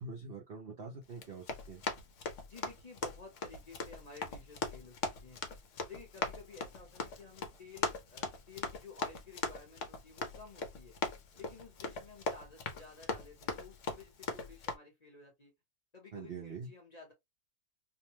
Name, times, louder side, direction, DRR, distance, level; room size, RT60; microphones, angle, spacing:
voice 1, 0.0-1.9 16.1-16.7, right 4 dB, 60° right, 0.6 m, -44 dB
Run, 1.1-14.8, left 4 dB, 65° left, 0.9 m, -40 dB
voice 2, 2.5-5.4 5.9-11.0 11.3-15.5 15.9-17.1, left 4 dB, 35° left, 0.8 m, -53 dB
2.7 x 2.1 x 2.9 m
omnidirectional pair, 1.6 m